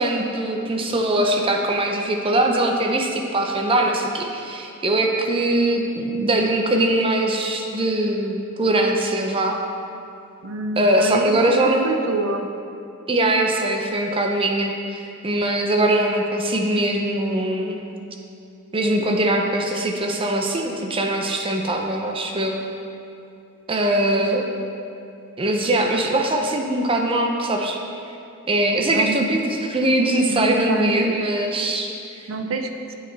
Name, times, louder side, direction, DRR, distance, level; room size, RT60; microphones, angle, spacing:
voice 1, 0.0-9.6 10.8-11.9 13.1-17.8 18.7-22.5 23.7-24.4 25.4-27.8 28.5-32.2, right 1 dB, 25° right, 2 dB, 0.6 m, -21 dB
voice 2, 10.4-12.5 28.9-29.4 30.3-31.1 32.3-32.9, right 3 dB, 70° right, 5 dB, 0.6 m, -27 dB
8.2 x 6.2 x 4.0 m, 2.6 s
head